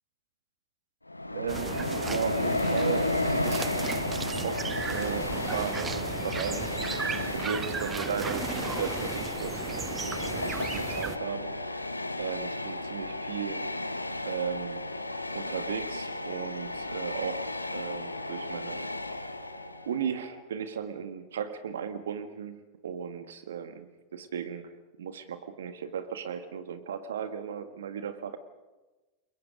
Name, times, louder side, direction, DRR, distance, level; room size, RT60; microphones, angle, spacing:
Train, 1.1-20.0, left 2 dB, 85° left, 1.1 m, -33 dB
voice 1, 1.3-3.8 4.3-11.9 12.2-13.7 14.2-14.9 15.3-18.8 19.8-24.7 25.0-28.4, right 7 dB, 65° right, 10 dB, 1.7 m, -36 dB
sound 1, 1.5-11.2, right 5 dB, 15° right, 0.9 m, -36 dB
sound 2, 11.1-20.4, left 3 dB, 30° left, 4.8 m, -53 dB
29.5 x 22.0 x 5.2 m, 1.1 s
figure-of-eight pair, 90°, 0 cm